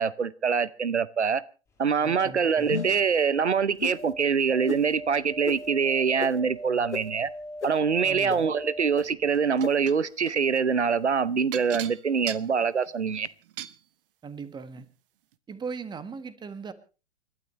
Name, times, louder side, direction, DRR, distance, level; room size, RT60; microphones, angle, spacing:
voice 1, 0.0-1.4 1.8-7.3 7.6-13.3, right 6 dB, 85° right, 0.7 m, -24 dB
sound 1, 1.7-9.9 10.2-10.3, equal, 10° left, 6.1 m, -42 dB
voice 2, 2.0-2.8 8.0-8.5 14.2-14.9 15.5-16.7, right 5 dB, 15° right, 1.3 m, -39 dB
sound 2, 2.6-3.1 3.8-4.0 4.7-4.8 5.5-5.6 6.2-6.3 6.9-7.0 7.6-7.7 8.3-8.4 9.0-9.1 9.6-9.7, left 5 dB, 85° left, 0.9 m, -32 dB
sound 3, 9.6-10.0 11.5-13.8 14.8-14.9 15.3-15.4, right 12 dB, 55° right, 1.0 m, -38 dB
29.5 x 12.5 x 3.1 m
figure-of-eight pair, 100°, 33 cm